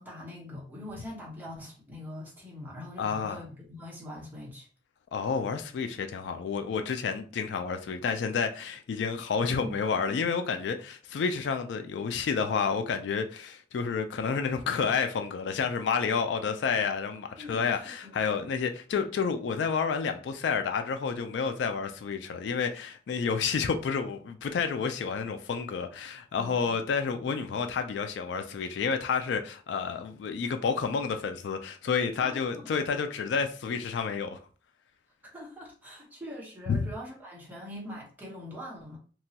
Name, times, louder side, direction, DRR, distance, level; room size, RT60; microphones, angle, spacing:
voice 1, 0.0-4.7 9.6-9.7 17.4-18.5 32.2-32.8 35.2-39.0, left 1 dB, 10° right, 0.9 m, -43 dB
voice 2, 3.0-3.4 5.1-34.4 36.7-36.9, left 5 dB, 70° left, 0.3 m, -30 dB
2.9 x 2.2 x 2.8 m
head